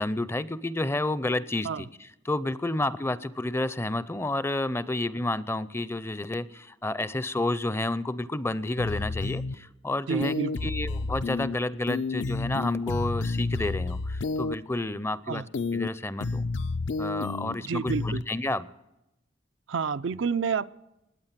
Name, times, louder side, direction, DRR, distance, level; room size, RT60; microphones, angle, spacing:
voice 1, 0.0-10.3 10.6-15.4 15.7-16.5 17.0-18.7, left 2 dB, 15° left, 18 dB, 0.5 m, -30 dB
sound 1, 8.8-9.5 10.2-11.5 11.9-14.5 15.5-15.9 16.2-17.5 17.9-18.2, left 3 dB, 70° left, 0.5 m, -30 dB
voice 2, 10.1-10.5 15.3-15.5 17.6-18.2 19.7-20.7, right 5 dB, 85° right, 12 dB, 0.5 m, -29 dB
20.5 x 8.6 x 7.4 m, 0.91 s
head